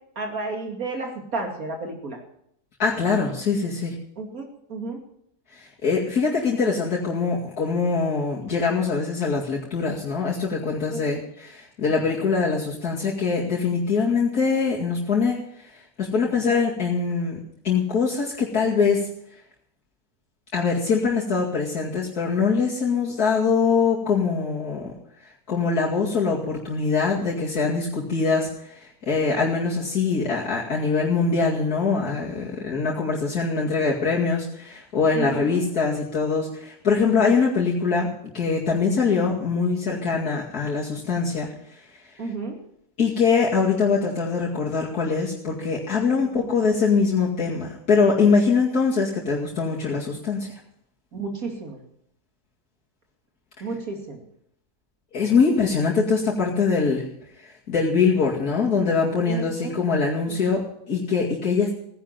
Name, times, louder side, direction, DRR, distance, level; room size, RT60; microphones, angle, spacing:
voice 1, 0.2-2.2 4.2-5.0 10.9-11.1 35.1-35.6 42.2-42.6 46.2-46.3 51.1-51.8 53.6-54.2 59.2-59.7 60.3-60.4, right 3 dB, 65° right, 2 dB, 3.0 m, -32 dB
voice 2, 2.8-3.9 5.5-15.7 16.0-17.4 17.6-19.1 20.5-24.9 25.5-41.5 43.0-50.5 55.1-57.1 57.4-61.7, left 5 dB, 80° left, -5 dB, 2.8 m, -23 dB
17.0 x 10.5 x 5.8 m, 0.72 s
omnidirectional pair, 1.6 m